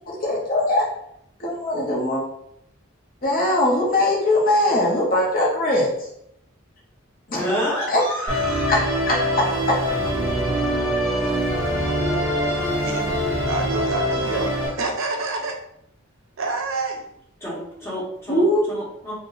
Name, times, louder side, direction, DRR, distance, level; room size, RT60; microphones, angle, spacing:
voice 1, 0.2-0.9 1.4-2.2 3.2-5.9 7.3-7.5 7.9-8.0 8.7-9.8 18.3-18.6, left 1 dB, 45° left, -2 dB, 0.7 m, -21 dB
voice 2, 7.3-8.7 17.4-18.4 18.7-19.1, equal, 10° left, -9 dB, 1.4 m, -28 dB
Musical instrument, 8.3-14.7, equal, 15° right, 1.0 m, -23 dB
voice 3, 13.5-15.6 16.4-17.0, right 3 dB, 65° right, 4 dB, 0.5 m, -27 dB
2.7 x 2.0 x 3.9 m, 0.74 s
head